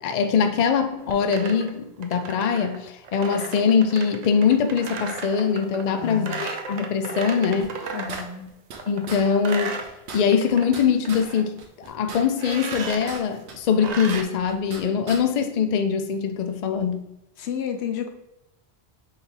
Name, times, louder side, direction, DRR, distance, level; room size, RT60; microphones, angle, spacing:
voice 1, 0.0-7.7 8.9-9.8 10.1-17.0, left 6 dB, 55° left, 7 dB, 0.5 m, -23 dB
sound 1, 1.0-8.3 8.8-10.7 10.9-11.4 12.4-13.1 13.8-14.2, right 4 dB, 55° right, 0.5 m, -35 dB
voice 2, 5.9-6.5 7.9-8.5 17.4-18.1, left 8 dB, 85° left, 6 dB, 0.9 m, -31 dB
sound 2, 7.6-8.8 9.1-9.2 9.5-9.6 9.8-11.3 11.6-13.2 13.5-14.8 15.1-15.2, right 4 dB, 90° right, 1.0 m, -39 dB
3.5 x 3.4 x 4.4 m, 0.88 s
omnidirectional pair, 1.1 m